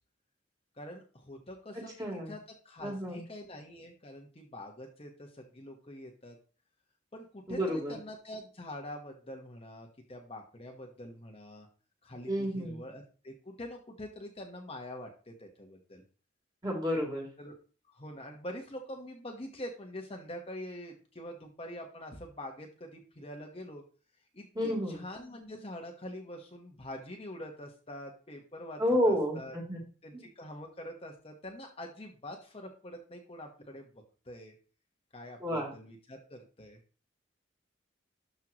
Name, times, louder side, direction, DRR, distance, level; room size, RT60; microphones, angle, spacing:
voice 1, 0.8-6.4 7.1-11.7 12.0-16.0 17.4-17.5 17.9-23.8 24.3-29.5 30.0-33.9 34.2-34.5 35.1-36.8, left 1 dB, 30° left, 2 dB, 1.2 m, -45 dB
voice 2, 1.8-2.3 2.8-3.2 7.5-8.0 12.3-12.8 16.6-17.2 24.6-25.0 28.8-29.8 30.1-30.2 35.4-35.7, equal, 20° right, -2 dB, 3.4 m, -30 dB
12.5 x 5.6 x 3.0 m, 0.38 s
head